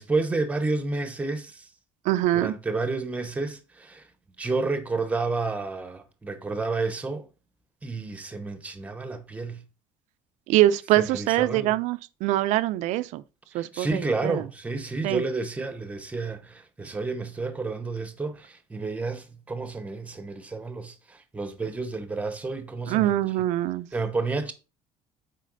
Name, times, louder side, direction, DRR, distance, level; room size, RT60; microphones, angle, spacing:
voice 1, 0.0-1.7 2.3-4.1 4.4-7.3 7.8-9.6 11.0-11.7 13.5-23.2 23.9-24.5, right 3 dB, 10° right, 0.9 m, -30 dB
voice 2, 2.1-2.5 10.5-13.2 13.5-14.4 15.0-15.2 22.9-23.9, right 14 dB, 65° right, 0.5 m, -24 dB
7.5 x 4.5 x 3.9 m
cardioid pair, 155°, 13 cm